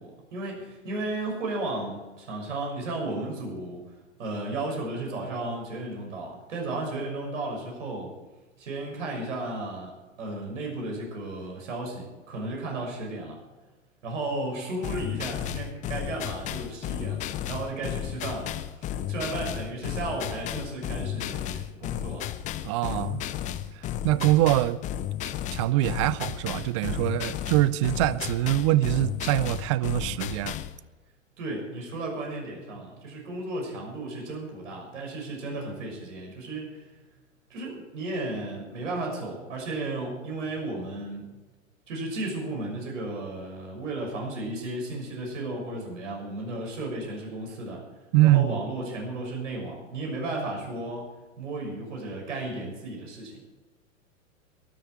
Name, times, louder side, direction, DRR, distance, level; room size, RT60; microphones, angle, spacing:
voice 1, 0.0-3.8 4.2-8.1 8.6-9.9 10.2-13.4 14.0-22.3 31.4-36.9 37.5-41.3 41.9-47.8 48.2-51.1 51.4-53.4, right 2 dB, 65° right, 0 dB, 6.2 m, -34 dB
sound 1, 14.8-30.8, left 11 dB, 20° left, 0.6 m, -33 dB
voice 2, 22.6-23.2 24.0-24.8 25.5-30.6 48.1-48.5, right 15 dB, 25° right, 20 dB, 0.4 m, -23 dB
22.5 x 9.8 x 4.7 m, 1.2 s
figure-of-eight pair, 105°, 40 cm